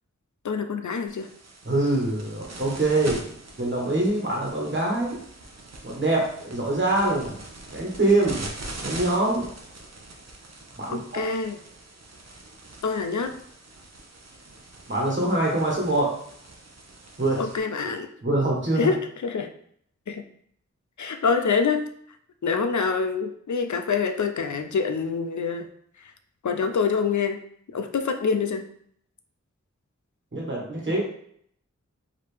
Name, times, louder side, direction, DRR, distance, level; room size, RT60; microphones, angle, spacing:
voice 1, 0.4-1.3 10.9-11.5 12.8-13.4 17.4-18.1 18.8-19.5 20.1-20.3 21.0-21.9 22.4-25.7 26.4-27.4 27.7-28.6, left 5 dB, 75° left, 7 dB, 0.5 m, -26 dB
sound 1, 1.1-17.6, right 2 dB, 60° right, 0.8 m, -43 dB
voice 2, 1.6-3.2 3.6-5.2 5.8-7.4 7.7-8.5 8.8-9.5 10.8-11.2 14.9-16.2 17.2-17.5 17.8-17.9 18.2-18.9 30.3-31.1, right 2 dB, 40° right, -3 dB, 1.3 m, -24 dB
4.8 x 2.8 x 3.4 m, 0.65 s
wide cardioid pair, 50°, 29 cm